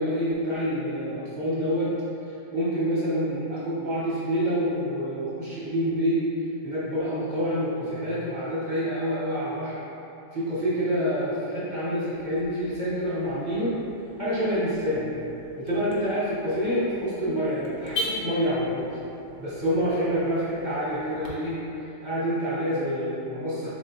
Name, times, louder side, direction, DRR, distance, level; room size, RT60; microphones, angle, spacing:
voice 1, 0.0-1.9 2.5-6.2 6.6-9.8 10.3-13.7 14.2-15.1 15.7-18.9 19.4-21.6 22.0-23.7, equal, 45° right, -10 dB, 0.6 m, -27 dB
Car / Alarm, 12.1-21.3, left 1 dB, 75° left, 0.5 m, -40 dB
4.0 x 3.5 x 2.6 m, 2.9 s
omnidirectional pair, 1.9 m